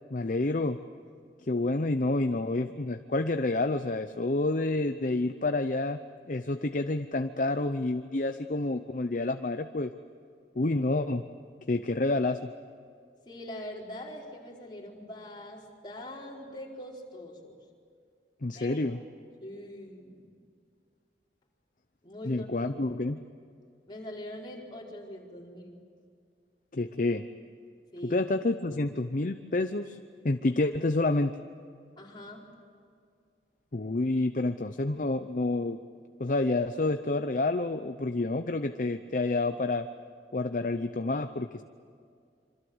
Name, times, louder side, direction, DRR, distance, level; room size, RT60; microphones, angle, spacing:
voice 1, 0.1-0.8 1.4-6.0 6.3-9.9 10.6-11.2 11.7-12.4 18.4-19.0 22.3-23.2 26.7-27.2 28.0-30.0 30.2-31.3 33.7-35.8 36.2-39.9 40.3-41.6, left 2 dB, 45° left, 8 dB, 0.7 m, -28 dB
voice 2, 13.3-17.6 18.6-19.0 19.4-20.3 22.0-22.7 23.9-25.8 27.9-28.2 32.0-32.5, left 1 dB, 25° left, -2 dB, 4.6 m, -43 dB
27.0 x 25.5 x 8.0 m, 2.2 s
head